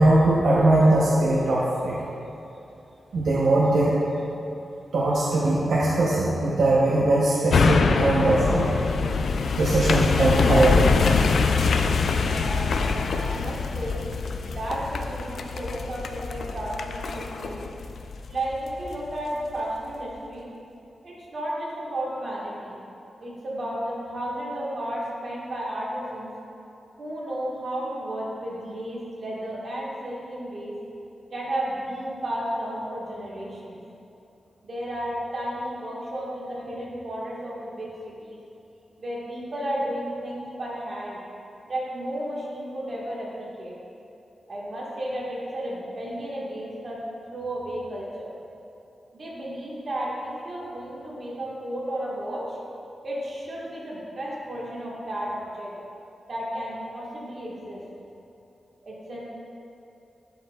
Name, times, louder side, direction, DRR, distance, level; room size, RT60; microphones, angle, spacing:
voice 1, 0.0-2.0 3.1-4.0 4.9-8.8 9.6-11.0, right 2 dB, 75° right, -6 dB, 0.8 m, -20 dB
sound 1, 7.5-19.0 19.4-19.5, left 4 dB, 75° left, 0.3 m, -24 dB
voice 2, 12.1-14.1 14.4-17.7 18.3-20.5 21.0-22.8 23.2-26.3 27.0-30.7 31.3-33.8 34.6-38.4 39.0-41.2 41.7-43.7 44.5-47.0 47.3-48.3 49.1-52.6 53.0-55.8 56.3-57.8 58.8-59.2, right 1 dB, 50° right, -5 dB, 1.5 m, -33 dB
11.5 x 5.3 x 2.3 m, 2.8 s
wide cardioid pair, 140°, 0 cm